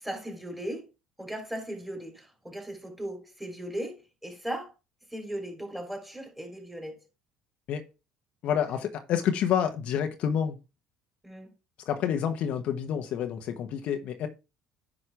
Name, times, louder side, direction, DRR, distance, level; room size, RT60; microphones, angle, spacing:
voice 1, 0.0-0.9 1.2-4.7 5.1-7.0 11.2-11.5, right 1 dB, 10° right, 3.6 m, -37 dB
voice 2, 8.4-10.6 11.9-14.3, left 8 dB, 60° left, 1.1 m, -28 dB
9.9 x 5.4 x 3.4 m
hypercardioid pair, 70°, 2 cm